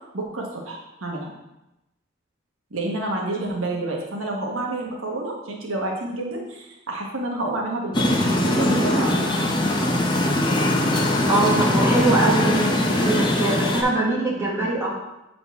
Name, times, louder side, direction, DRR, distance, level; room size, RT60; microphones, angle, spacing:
voice 1, 0.1-1.3 2.7-9.3, right 2 dB, 85° right, -1 dB, 1.1 m, -29 dB
sound 1, 7.9-13.8, left 1 dB, 20° left, 0.7 m, -21 dB
voice 2, 11.3-14.9, right 2 dB, 15° right, -6 dB, 1.4 m, -22 dB
7.4 x 3.9 x 3.5 m, 0.93 s
head